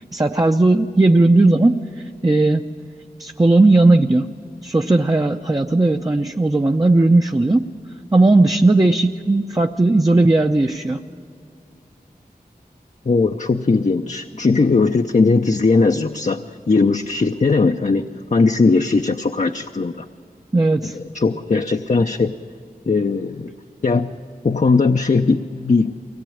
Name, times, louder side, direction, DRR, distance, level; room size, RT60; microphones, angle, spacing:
voice 1, 0.0-1.8 2.2-2.6 3.2-4.3 4.6-7.6 8.1-11.0 20.5-21.0, right 2 dB, 25° right, 3 dB, 0.7 m, -16 dB
voice 2, 13.1-20.0 20.8-22.3 22.9-23.5 23.8-24.1 24.4-25.9, left 4 dB, 50° left, 5 dB, 0.7 m, -18 dB
23.5 x 18.0 x 8.7 m, 2.3 s
wide cardioid pair, 60°, 16 cm